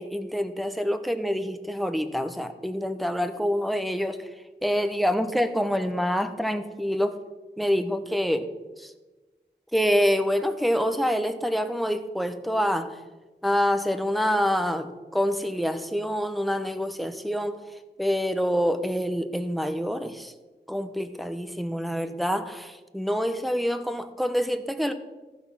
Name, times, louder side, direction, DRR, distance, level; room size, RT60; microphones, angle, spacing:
voice 1, 0.0-7.2 7.6-8.5 8.8-8.9 9.7-13.0 13.4-20.3 20.7-24.9, equal, ahead, 9 dB, 0.9 m, -26 dB
14.5 x 6.2 x 5.7 m, 1.2 s
wide cardioid pair, 40°, 19 cm